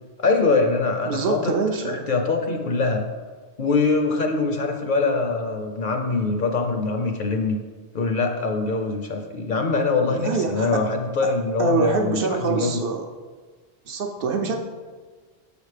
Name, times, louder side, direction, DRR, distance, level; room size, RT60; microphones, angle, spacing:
voice 1, 0.2-1.5 1.8-3.0 3.6-7.6 7.9-12.8, left 3 dB, 55° left, 3 dB, 0.6 m, -23 dB
voice 2, 1.1-2.0 10.1-10.9 11.2-11.3 11.6-13.1 13.9-14.6, right 4 dB, 65° right, 3 dB, 0.7 m, -25 dB
6.9 x 4.9 x 3.3 m, 1.5 s
omnidirectional pair, 1.2 m